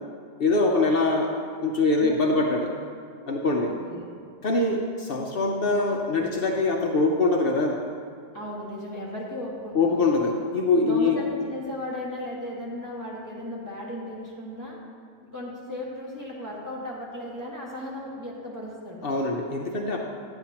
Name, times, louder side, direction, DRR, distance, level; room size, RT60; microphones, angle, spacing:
voice 1, 0.4-1.3 1.6-2.7 3.3-3.7 4.4-7.8 9.7-11.2 19.0-20.0, left 3 dB, 90° left, 1 dB, 0.5 m, -23 dB
voice 2, 3.6-4.0 8.3-10.0 10.8-14.8 15.3-19.0, left 1 dB, 10° right, -6 dB, 1.6 m, -36 dB
11.0 x 8.8 x 2.9 m, 2.2 s
omnidirectional pair, 1.8 m